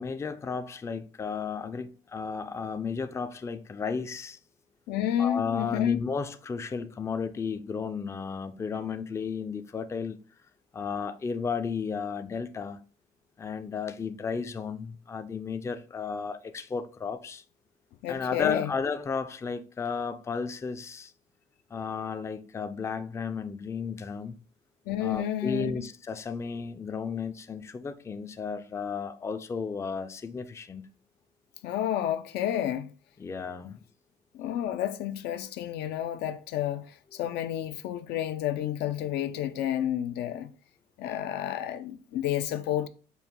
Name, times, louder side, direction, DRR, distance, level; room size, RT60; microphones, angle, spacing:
voice 1, 0.0-4.4 5.2-10.2 10.7-12.8 13.4-17.4 18.1-21.1 21.7-24.4 25.0-30.9 33.2-33.8, left 5 dB, 15° left, 0.4 m, -33 dB
voice 2, 4.9-6.0 18.0-18.7 24.9-25.8 31.6-32.9 33.6-33.7 34.3-36.9 37.1-40.5 41.0-42.9, left 11 dB, 80° left, 0.5 m, -30 dB
5.3 x 2.1 x 4.4 m
cardioid pair, 110°, 17 cm